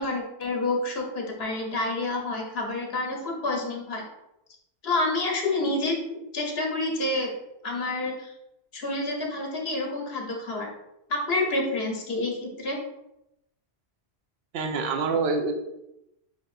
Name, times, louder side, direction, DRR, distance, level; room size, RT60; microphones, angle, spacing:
voice 1, 0.0-4.0 4.8-7.3 7.6-8.3 8.7-10.7 11.1-12.8, left 2 dB, 70° left, 0 dB, 1.2 m, -28 dB
voice 2, 14.5-15.5, right 4 dB, 80° right, 4 dB, 0.9 m, -26 dB
7.2 x 2.7 x 2.5 m, 0.86 s
omnidirectional pair, 1.1 m